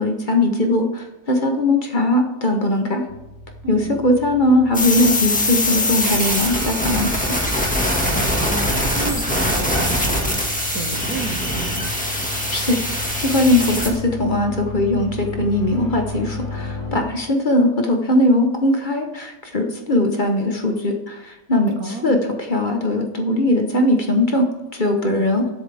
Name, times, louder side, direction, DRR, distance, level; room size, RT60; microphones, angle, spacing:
voice 1, 0.0-3.0 3.7-7.3 12.5-25.5, left 1 dB, 35° left, 3 dB, 1.1 m, -20 dB
sound 1, 3.1-17.0, left 2 dB, 80° left, 2.2 m, -35 dB
voice 2, 3.6-3.9 8.1-11.8 21.8-22.2 25.1-25.5, right 4 dB, 85° right, 5 dB, 1.8 m, -32 dB
sound 2, 4.7-13.9, left 1 dB, 5° left, 1.8 m, -22 dB
19.5 x 7.7 x 3.5 m, 1.0 s
omnidirectional pair, 1.5 m